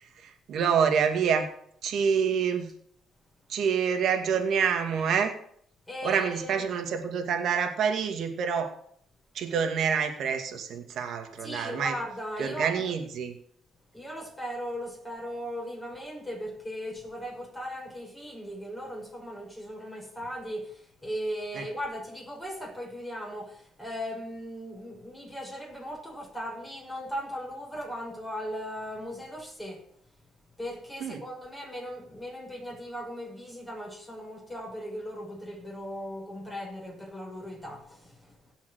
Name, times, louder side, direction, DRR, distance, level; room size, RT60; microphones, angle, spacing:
voice 1, 0.0-1.5 1.8-2.7 3.5-5.3 6.0-8.8 9.3-11.9 12.4-13.4 21.6-21.7 31.0-31.2, right 7 dB, 65° right, 2.2 m, -27 dB
voice 2, 5.9-6.6 11.4-12.9 13.9-29.9 30.6-38.5, equal, 15° left, 6.1 m, -38 dB
17.0 x 5.8 x 6.5 m
cardioid pair, 95°, 0 cm